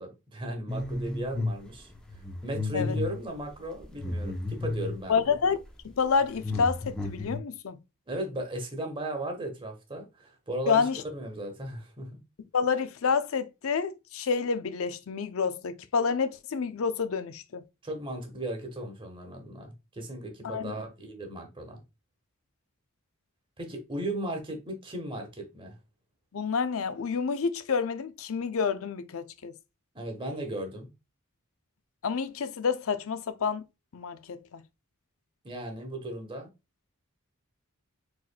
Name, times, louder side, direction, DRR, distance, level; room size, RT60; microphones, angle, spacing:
voice 1, 0.0-1.9 2.4-5.3 8.1-12.2 17.8-21.8 23.6-25.8 29.9-30.9 35.4-36.5, right 1 dB, 25° right, 1.2 m, -36 dB
sound 1, 0.7-1.6 1.9-5.0 5.6-5.8 6.1-7.4, left 2 dB, 5° left, 0.7 m, -33 dB
voice 2, 5.1-7.8 10.7-11.0 12.5-17.6 20.4-20.8 26.3-29.5 32.0-33.6 33.9-34.6, left 5 dB, 65° left, 0.5 m, -28 dB
4.6 x 4.0 x 2.2 m
head